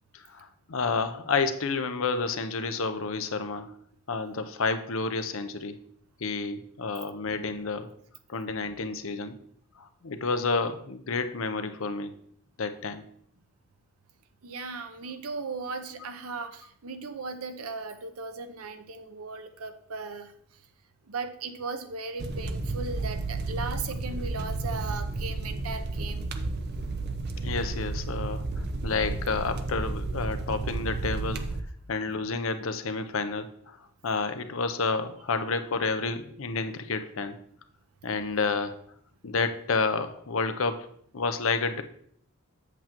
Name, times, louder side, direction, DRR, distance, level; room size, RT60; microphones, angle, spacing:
voice 1, 0.1-3.7 4.1-5.8 6.2-7.9 8.3-9.4 9.8-12.1 12.6-13.1 27.4-31.4 31.9-33.8 34.0-37.4 38.0-38.8 39.2-40.9 41.1-41.8, left 4 dB, 65° left, 9 dB, 0.7 m, -30 dB
voice 2, 14.4-20.3 21.1-26.5 38.3-38.5, right 4 dB, 85° right, 8 dB, 0.7 m, -37 dB
sound 1, 22.2-31.6, right 2 dB, 50° right, 0.6 m, -32 dB
7.9 x 7.5 x 3.0 m, 0.66 s
head